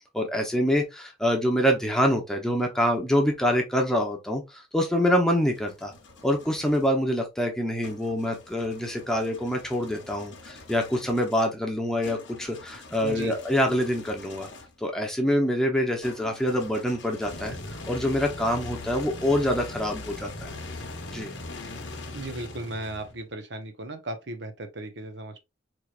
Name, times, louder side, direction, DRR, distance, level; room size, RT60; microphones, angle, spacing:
voice 1, 0.1-5.9 6.2-14.5 14.8-17.6 17.9-20.5 21.1-21.3, equal, 5° left, 0.8 m, -25 dB
sound 1, 5.1-6.9 7.8-14.8 16.0-23.3, left 2 dB, 80° left, 0.9 m, -42 dB
voice 2, 13.0-13.4 22.1-25.4, right 2 dB, 70° right, 0.8 m, -36 dB
4.6 x 3.1 x 2.4 m
head